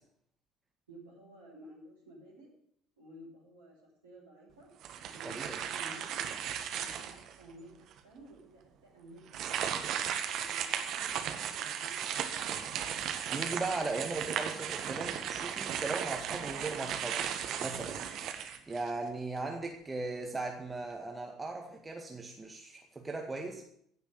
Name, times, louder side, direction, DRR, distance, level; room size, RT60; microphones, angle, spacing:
voice 1, 0.9-2.5 3.0-3.7 4.0-4.7 5.0-6.3 6.7-9.4 10.3-12.6, right 1 dB, 80° right, -6 dB, 5.9 m, -53 dB
sound 1, 4.8-7.3 7.9-8.0 9.3-19.1, right 9 dB, 55° right, 1.7 m, -36 dB
voice 2, 5.2-5.6 13.3-17.3 17.6-18.0 18.7-23.6, right 3 dB, 15° right, 2 dB, 2.0 m, -38 dB
16.0 x 6.7 x 9.5 m, 0.68 s
figure-of-eight pair, 60°, 0 cm